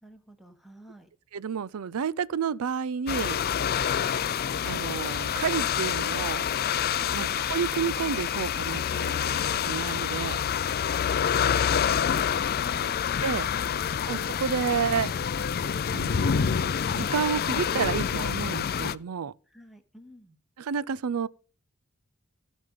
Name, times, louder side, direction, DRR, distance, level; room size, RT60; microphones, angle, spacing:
voice 1, 0.0-1.1 7.0-7.2 19.5-20.4, equal, ahead, 1.4 m, -51 dB
voice 2, 1.3-3.4 4.6-6.4 7.1-10.4 12.8-12.9 13.2-13.5 14.1-15.1 15.9-19.3 20.6-21.3, right 7 dB, 85° right, 0.5 m, -30 dB
sound 1, 3.1-19.0, left 8 dB, 45° left, 0.4 m, -27 dB
15.0 x 5.2 x 5.5 m
head